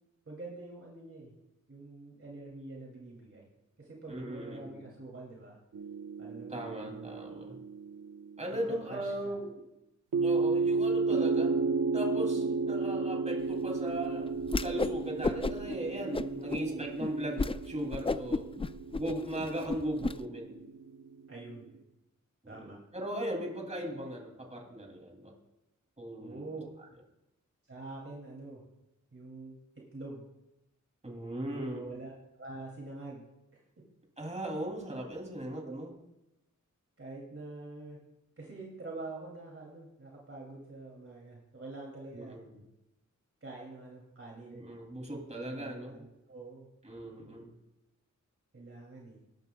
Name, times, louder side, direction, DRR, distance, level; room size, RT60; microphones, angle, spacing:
voice 1, 0.3-1.4 1.7-3.5 3.8-5.6 6.2-7.1 8.5-8.6 8.9-9.3 16.5-16.8 21.3-21.7 22.5-22.8 26.2-26.7 27.7-28.6 29.1-29.6 29.9-30.2 31.5-33.2 33.5-33.6 35.6-35.8 37.0-38.0 38.4-42.4 43.4-44.6 45.4-46.7 48.5-49.2, right 2 dB, 45° right, -3 dB, 2.7 m, -46 dB
voice 2, 4.1-4.8 6.5-7.6 8.4-9.6 10.2-11.6 11.9-14.3 14.6-18.5 19.0-20.6 22.4-25.3 26.0-26.4 31.0-31.8 34.2-35.9 42.1-42.5 44.5-46.0 46.8-47.5, right 1 dB, 20° right, 0 dB, 2.7 m, -38 dB
sound 1, 5.7-8.6 10.1-21.4, right 4 dB, 75° right, 0.9 m, -33 dB
Whoosh swoosh swish, 14.5-15.0 15.2-15.7 16.1-16.6 17.0-17.1 17.4-17.6 17.9-20.1, left 3 dB, 20° left, 0.3 m, -32 dB
20.0 x 11.0 x 2.3 m, 0.93 s
wide cardioid pair, 85°, 31 cm